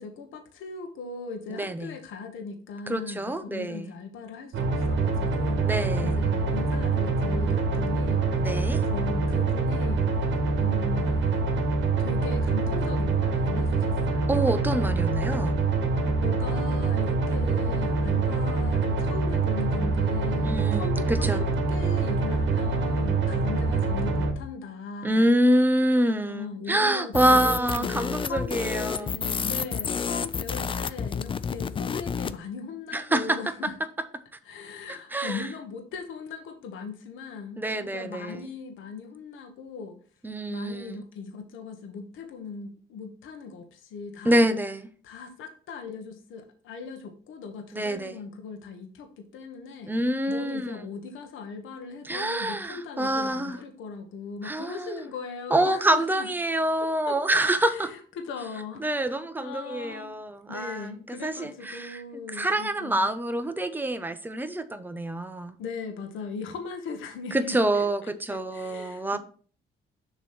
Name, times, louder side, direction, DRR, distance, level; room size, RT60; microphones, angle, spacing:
voice 1, 0.0-5.7 6.0-8.2 8.8-10.0 10.6-11.5 12.0-14.3 16.1-21.4 21.7-25.3 26.3-33.7 34.4-40.0 40.5-44.4 45.0-49.9 50.3-56.3 57.1-60.2 60.5-63.1 65.6-67.6 68.0-69.2, left 5 dB, 85° left, 1.1 m, -39 dB
voice 2, 1.5-1.9 2.9-3.9 5.6-6.2 8.4-8.8 14.3-15.6 20.4-21.4 25.0-29.1 32.9-33.4 35.1-35.5 37.6-38.4 40.2-41.0 44.2-44.9 47.7-48.2 49.9-50.8 52.0-53.6 54.4-55.0 55.5-57.9 58.8-62.0 62.3-65.5 67.3-69.2, right 1 dB, 10° right, 0.7 m, -26 dB
sound 1, 4.5-24.3, right 4 dB, 70° right, 1.4 m, -25 dB
sound 2, 27.1-32.4, left 6 dB, 25° left, 0.3 m, -30 dB
6.7 x 3.1 x 5.8 m
cardioid pair, 90°, 20 cm